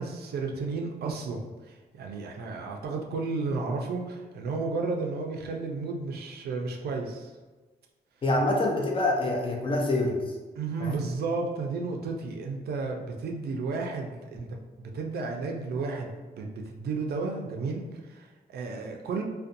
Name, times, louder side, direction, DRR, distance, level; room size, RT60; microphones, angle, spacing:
voice 1, 0.0-7.3 10.6-14.5 14.8-19.2, right 4 dB, 75° right, 2 dB, 0.4 m, -33 dB
voice 2, 8.2-10.3 10.8-11.0, left 2 dB, 30° left, -1 dB, 0.5 m, -26 dB
2.5 x 2.2 x 2.5 m, 1.3 s
cardioid pair, 90°, 17 cm